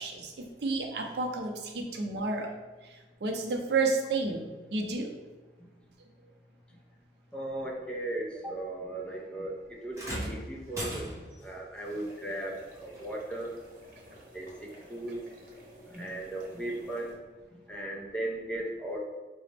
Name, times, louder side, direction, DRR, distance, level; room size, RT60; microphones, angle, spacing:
voice 1, 0.0-2.5 2.8-5.1 15.6-15.8, right 3 dB, 70° right, 2 dB, 0.5 m, -31 dB
voice 2, 7.3-11.1 11.4-13.6 14.1-15.2 15.9-17.2 17.5-19.0, right 1 dB, 5° left, -1 dB, 0.4 m, -37 dB
sound 1, 9.9-11.5 12.9-13.1 14.0-14.1, right 1 dB, 15° right, 0.8 m, -37 dB
sound 2, 11.8-17.2, equal, 50° right, 0.9 m, -53 dB
4.8 x 2.0 x 3.2 m, 1.2 s
head